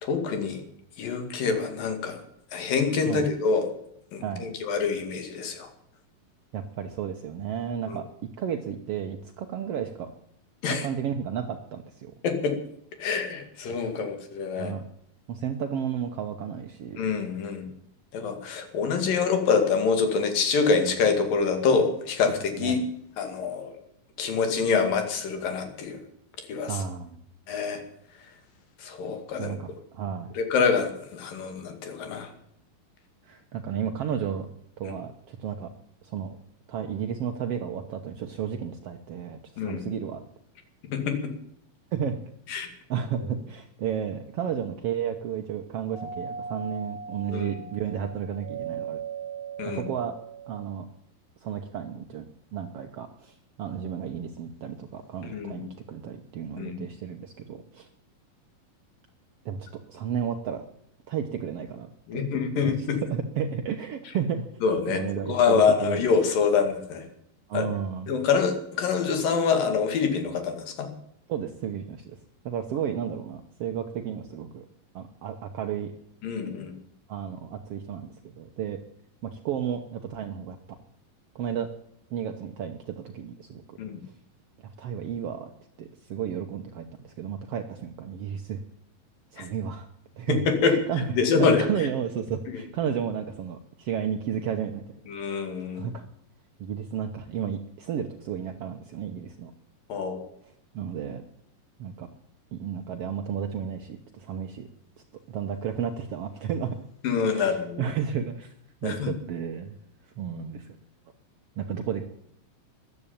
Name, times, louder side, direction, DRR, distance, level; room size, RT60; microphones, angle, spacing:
voice 1, 0.0-0.6 1.0-2.2 2.5-3.7 4.1-5.7 7.9-8.0 10.6-10.9 12.2-12.6 13.0-14.7 17.0-17.7 18.1-22.8 23.2-23.8 24.2-26.0 26.5-26.8 27.5-27.8 28.8-29.6 30.4-32.3 39.6-39.9 40.9-41.3 42.5-42.7 47.3-47.5 49.6-49.8 55.3-55.7 56.6-56.8 62.1-63.0 64.6-65.0 65.3-67.1 67.5-67.7 68.1-70.9 76.2-76.7 83.8-84.0 89.4-89.5 90.3-90.8 91.1-91.6 95.1-95.9 99.9-100.2 107.0-107.8 108.8-109.1, left 5 dB, 70° left, 7 dB, 3.9 m, -26 dB
voice 2, 6.5-8.1 8.4-10.1 10.7-12.1 13.7-13.8 14.6-14.9 15.3-17.0 22.2-22.9 26.7-27.2 29.4-30.3 33.2-34.5 34.8-35.7 36.0-36.4 36.7-40.2 41.9-42.2 42.9-49.0 49.6-50.1 50.5-50.9 51.4-52.2 52.5-57.9 59.4-59.6 59.9-60.6 61.1-62.2 62.7-64.4 64.9-66.1 67.5-68.1 71.3-72.0 72.4-74.7 74.9-75.9 77.1-78.8 79.2-80.8 81.3-81.7 82.1-83.8 84.0-84.1 84.8-85.5 85.8-88.6 89.3-89.9 90.1-94.8 95.7-96.1 96.6-99.5 100.4-101.2 101.8-102.1 102.5-104.7 105.3-106.8 107.3-108.5 108.8-109.8 110.2-110.7 111.6-112.0, right 8 dB, 75° right, 5 dB, 1.4 m, -32 dB
Doorbell, 45.9-50.8, right 6 dB, 10° right, 3.1 m, -38 dB
14.0 x 11.0 x 8.7 m, 0.73 s
omnidirectional pair, 4.1 m